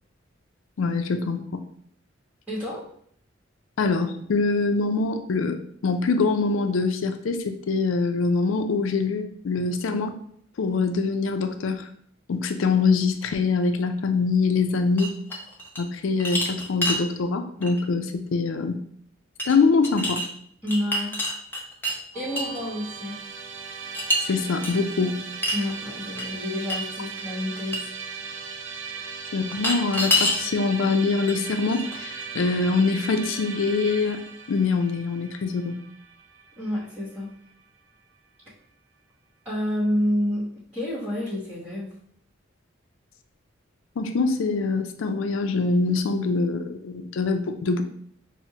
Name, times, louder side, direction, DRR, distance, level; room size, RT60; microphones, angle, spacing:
voice 1, 0.8-1.6 3.8-10.1 10.6-11.9 12.3-15.1 15.8-18.8 19.5-20.2 24.2-25.2 29.3-34.2 34.5-35.8 44.0-47.8, left 4 dB, 75° left, 7 dB, 0.4 m, -24 dB
voice 2, 2.5-2.9 20.6-21.2 22.1-23.2 25.5-27.8 36.6-37.3 39.4-40.5 40.7-41.9, left 1 dB, 10° right, -9 dB, 1.1 m, -28 dB
sound 1, 15.0-15.8 16.2-17.0 17.6-17.8 19.4-19.5 19.8-20.3 20.7-22.0 22.4-22.6 23.9-24.2 24.6-24.7 25.4-25.7 26.2-26.3 26.7-26.8 27.2-27.3 27.7-27.8 29.5-30.4 31.3-31.4 31.7-32.2, left 1 dB, 10° left, 0.6 m, -26 dB
Musical instrument, 22.1-37.3, right 5 dB, 65° right, 0.4 m, -38 dB
5.9 x 2.1 x 2.8 m, 0.66 s
head